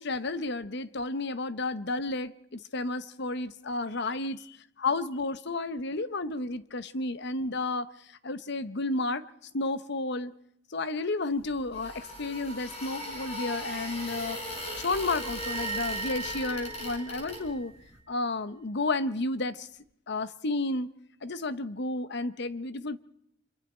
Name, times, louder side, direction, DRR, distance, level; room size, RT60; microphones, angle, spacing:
voice 1, 0.0-7.9 8.2-9.2 9.5-10.3 10.7-14.4 14.8-17.7 18.1-19.7 20.1-20.9 21.2-23.0, left 2 dB, 60° left, 0.9 m, -32 dB
sound 1, 11.4-17.8, left 1 dB, 35° left, 5.4 m, -38 dB
sound 2, 15.0-17.7, right 6 dB, 85° right, 2.4 m, -39 dB
26.5 x 23.0 x 4.4 m
head